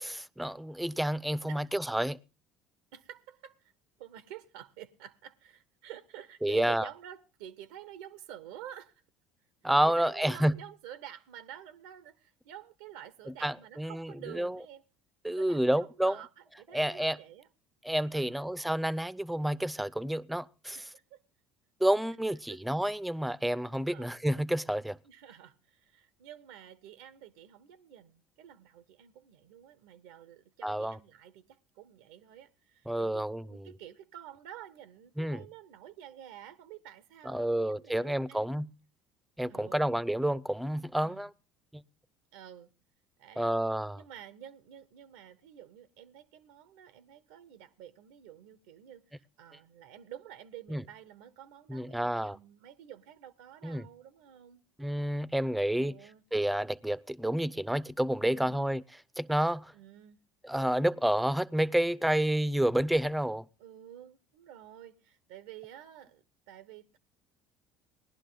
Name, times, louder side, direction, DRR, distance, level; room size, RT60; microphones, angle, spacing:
voice 1, 0.0-2.2 6.4-6.9 9.6-10.5 13.4-14.6 15.2-16.2 16.7-17.2 17.8-20.8 21.8-25.0 30.6-31.0 32.9-33.7 35.2-35.4 37.3-38.7 39.4-41.3 41.7-41.8 43.4-44.0 50.7-50.8 51.7-52.4 53.6-53.8 54.8-55.9 56.3-58.8 59.2-59.7 60.4-63.4, right 1 dB, 5° right, 0.6 m, -29 dB
voice 2, 2.9-3.7 4.0-9.0 9.6-14.9 15.3-17.5 18.1-18.4 20.7-21.2 22.5-22.6 23.9-24.1 25.0-38.7 39.4-39.9 41.0-41.3 42.3-42.7 43.2-43.6 44.0-54.6 55.8-56.2 58.3-58.7 59.7-60.2 63.6-67.0, right 11 dB, 80° right, 0.8 m, -50 dB
18.5 x 11.0 x 3.8 m
hypercardioid pair, 75°, 0 cm